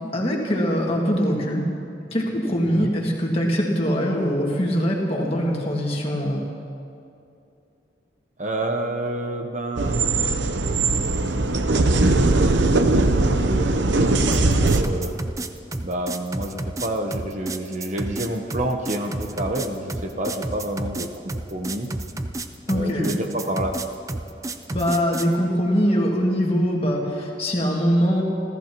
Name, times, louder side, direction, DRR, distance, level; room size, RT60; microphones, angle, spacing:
voice 1, 0.1-1.7 2.1-6.4 22.7-23.1 24.7-28.2, equal, 30° left, -1 dB, 1.9 m, -22 dB
voice 2, 8.4-10.0 11.3-15.1 15.8-21.9 22.7-23.7, right 1 dB, 40° right, 3 dB, 0.9 m, -29 dB
sound 1, 9.8-14.8, right 2 dB, 90° right, 0.8 m, -20 dB
sound 2, 14.3-25.3, right 2 dB, 20° right, 0.5 m, -31 dB
29.5 x 14.0 x 3.0 m, 2.6 s
head